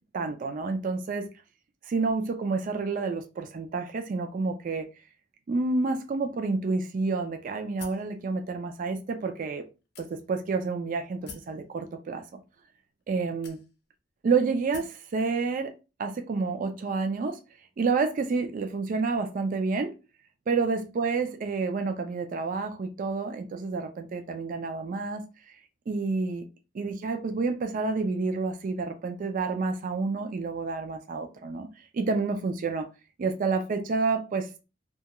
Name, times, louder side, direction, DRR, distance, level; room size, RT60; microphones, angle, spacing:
voice 1, 0.1-1.3 1.8-4.9 5.5-9.6 10.0-12.4 13.1-13.6 14.2-15.7 16.0-17.4 17.8-19.9 20.5-25.2 25.9-26.4 26.7-31.7 31.9-32.9 33.2-34.5, right 4 dB, 45° right, 0.3 m, -29 dB
sound 1, 7.8-8.1 8.9-9.0 9.9-10.5 11.3-11.6 12.5-12.6 13.4-14.0 14.7-15.0, left 5 dB, 60° left, 0.6 m, -46 dB
2.2 x 2.2 x 2.8 m
head